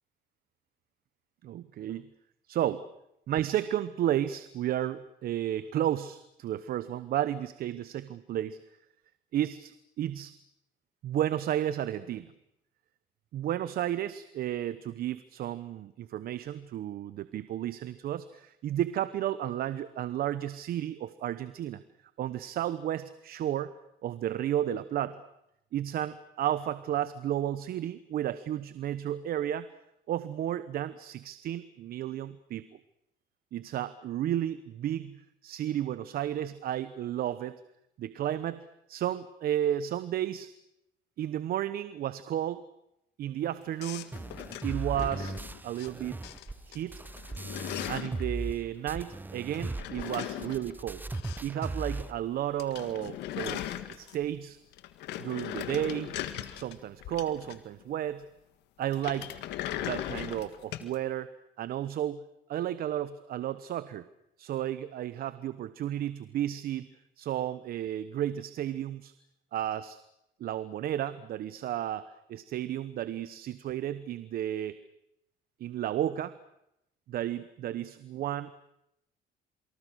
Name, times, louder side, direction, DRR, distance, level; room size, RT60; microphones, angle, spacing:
voice 1, 1.4-2.0 2.5-2.8 3.3-8.6 9.3-10.3 11.0-12.3 13.3-21.8 22.2-23.7 24.0-25.2 25.7-29.7 30.1-32.6 33.5-37.6 38.0-40.5 41.2-42.6 43.2-44.1 44.6-45.4 45.6-46.2 46.7-47.0 47.9-51.0 51.4-54.6 55.2-56.2 56.5-58.2 58.8-59.3 59.8-61.3 61.6-62.2 62.5-64.0 64.4-66.9 67.2-69.1 69.5-70.0 70.4-74.8 75.6-76.3 77.1-78.5, right 11 dB, 65° right, 14 dB, 1.0 m, -32 dB
sound 1, 43.8-45.9 46.2-46.8 47.0-48.2 49.5-51.7 51.9-52.0 52.3-52.4 52.6-54.3 54.7-57.8 58.9-60.9, left 12 dB, 85° left, 1.8 m, -39 dB
sound 2, 44.1-48.6 48.9-52.1, right 2 dB, 10° right, 0.9 m, -38 dB
28.0 x 24.5 x 6.4 m, 0.81 s
cardioid pair, 110°, 17 cm